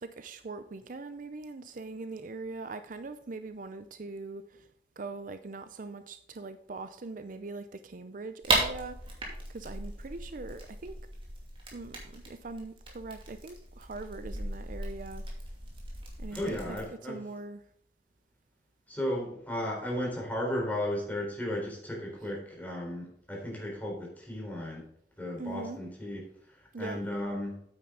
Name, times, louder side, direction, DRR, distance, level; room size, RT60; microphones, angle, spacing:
voice 1, 0.0-4.7 5.0-9.2 9.5-11.0 11.7-15.2 16.2-16.8 17.0-17.6 25.4-25.8 26.7-27.0, right 3 dB, 50° right, 10 dB, 0.5 m, -41 dB
sound 1, 8.4-16.8, right 2 dB, 30° right, 2.6 m, -36 dB
voice 2, 16.3-17.2 18.9-24.9 25.2-27.6, left 1 dB, 10° left, -3 dB, 4.0 m, -35 dB
9.0 x 8.8 x 3.8 m, 0.67 s
head